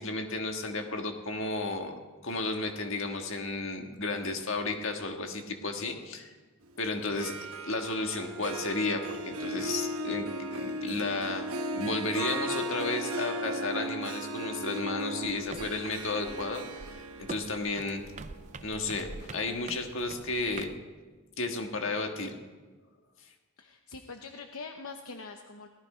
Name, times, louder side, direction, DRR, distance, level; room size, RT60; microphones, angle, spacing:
voice 1, 0.0-1.9 2.2-6.3 6.8-7.3 7.7-11.5 11.7-18.0 18.6-20.7 21.4-22.4, left 3 dB, 60° left, 4 dB, 1.6 m, -33 dB
Harp, 7.0-19.9, right 1 dB, 75° right, 1.1 m, -37 dB
sound 1, 15.2-20.8, right 3 dB, 30° right, 0.5 m, -45 dB
voice 2, 23.6-25.7, left 4 dB, 75° left, 5 dB, 0.9 m, -43 dB
17.5 x 14.0 x 5.0 m, 1.3 s
head